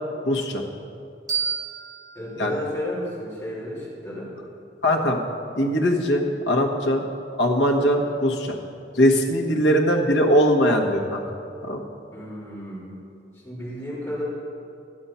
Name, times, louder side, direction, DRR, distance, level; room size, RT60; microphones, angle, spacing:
voice 1, 0.2-0.7 2.4-2.5 4.8-5.2 5.6-7.0 7.4-8.6 8.9-11.2 11.6-11.8, equal, 75° left, 1 dB, 1.3 m, -21 dB
sound 1, 1.3-4.1, right 6 dB, 20° right, 2.9 m, -33 dB
voice 2, 2.1-4.3 12.1-13.0 13.4-14.2, left 1 dB, 15° left, -9 dB, 3.2 m, -32 dB
12.0 x 8.7 x 5.6 m, 2.5 s
head